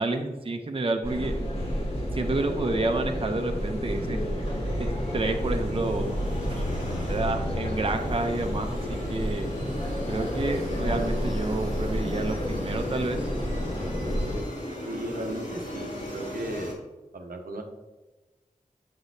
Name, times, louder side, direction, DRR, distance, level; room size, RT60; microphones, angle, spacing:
voice 1, 0.0-1.3 2.1-4.2 4.8-6.2 6.5-6.6 7.1-9.5 10.1-13.3, right 2 dB, 40° right, 4 dB, 0.6 m, -29 dB
sound 1, 1.0-14.4, equal, 40° left, 1.4 m, -30 dB
sound 2, 2.6-16.7, left 1 dB, 60° left, 1.8 m, -38 dB
voice 2, 14.9-16.7 17.1-17.6, right 1 dB, 80° right, 3 dB, 0.7 m, -35 dB
6.9 x 6.2 x 2.7 m, 1.2 s
cardioid pair, 45°, 15 cm